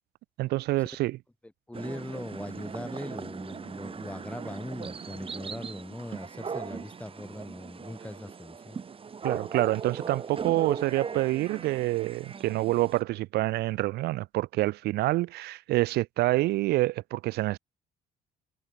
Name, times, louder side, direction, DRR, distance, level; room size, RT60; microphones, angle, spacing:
voice 1, 0.4-1.2 9.2-17.6, right 18 dB, 75° right, 0.5 m, -27 dB
voice 2, 1.7-8.8, left 1 dB, 5° left, 3.8 m, -40 dB
sound 1, 1.7-13.0, right 6 dB, 35° right, 3.7 m, -39 dB
cardioid pair, 110°, 17 cm